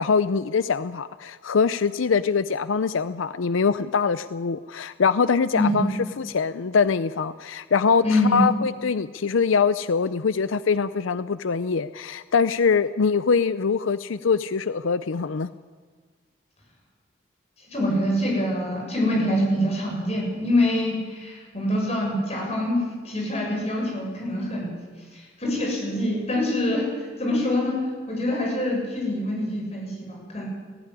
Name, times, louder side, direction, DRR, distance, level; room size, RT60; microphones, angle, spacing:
voice 1, 0.0-5.9 6.2-15.5, left 5 dB, 90° left, 14 dB, 0.5 m, -23 dB
voice 2, 5.5-5.9 8.0-8.5 17.7-24.8 25.1-26.9 27.2-30.5, left 1 dB, 35° left, -1 dB, 7.3 m, -25 dB
19.0 x 15.5 x 9.9 m, 1.5 s
head